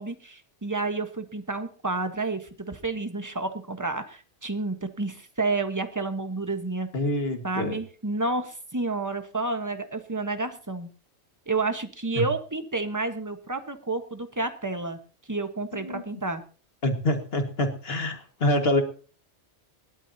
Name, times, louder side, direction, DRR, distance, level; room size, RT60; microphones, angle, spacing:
voice 1, 0.0-6.9 7.4-10.9 11.5-15.0 15.3-16.4, right 3 dB, 15° right, 8 dB, 1.2 m, -30 dB
voice 2, 6.9-7.8 12.2-12.3 15.7-16.0 16.8-18.8, left 1 dB, 60° left, 5 dB, 2.0 m, -26 dB
20.5 x 12.0 x 2.8 m, 0.38 s
omnidirectional pair, 1.2 m